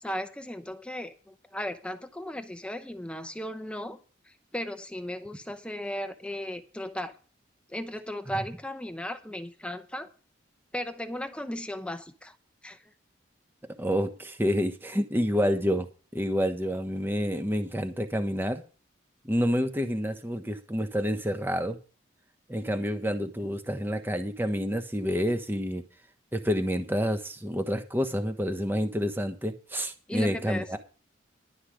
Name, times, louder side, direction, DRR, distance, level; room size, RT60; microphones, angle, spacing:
voice 1, 0.0-4.0 4.5-7.1 7.7-10.1 10.7-12.4 12.6-12.8 30.1-30.8, equal, 5° left, 0.8 m, -36 dB
voice 2, 13.8-15.9 16.1-18.6 19.2-21.8 22.5-25.8 26.3-30.8, equal, 10° right, 1.2 m, -28 dB
11.5 x 5.7 x 8.5 m
head